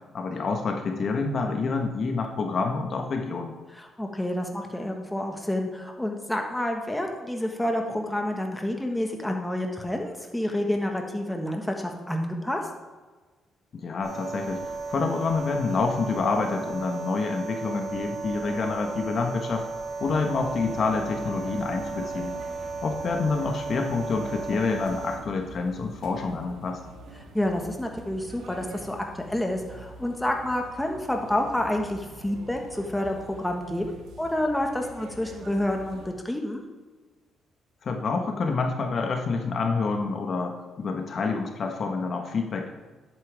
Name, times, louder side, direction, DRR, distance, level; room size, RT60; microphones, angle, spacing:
voice 1, 0.1-3.5 13.7-19.6 20.0-22.3 22.8-26.8 37.8-42.7, left 4 dB, 50° left, 3 dB, 1.3 m, -28 dB
voice 2, 3.7-12.6 27.3-36.6, left 1 dB, 5° left, 2 dB, 1.5 m, -29 dB
sound 1, 14.0-25.2, right 4 dB, 25° right, 3.5 m, -34 dB
sound 2, 20.0-36.1, right 3 dB, 75° right, 1.7 m, -45 dB
11.0 x 8.7 x 3.5 m, 1.3 s
cardioid pair, 90°, 0 cm